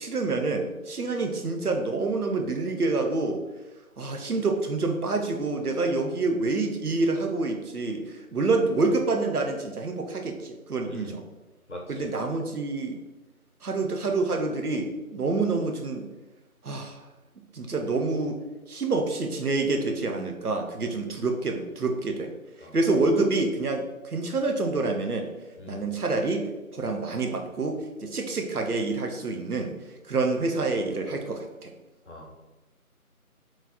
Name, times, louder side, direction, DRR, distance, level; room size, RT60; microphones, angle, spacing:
voice 1, 0.0-3.4 4.0-11.2 11.9-13.0 13.6-16.0 16.6-17.0 17.5-18.4 18.7-22.3 22.7-25.3 25.7-26.5 26.7-29.8 30.1-31.7, right 3 dB, 85° right, 3 dB, 0.8 m, -27 dB
voice 2, 11.7-12.1 22.6-22.8 25.6-25.8 32.1-32.3, left 1 dB, 50° left, -1 dB, 0.9 m, -42 dB
3.1 x 2.4 x 4.1 m, 1.1 s
figure-of-eight pair, 170°, 44 cm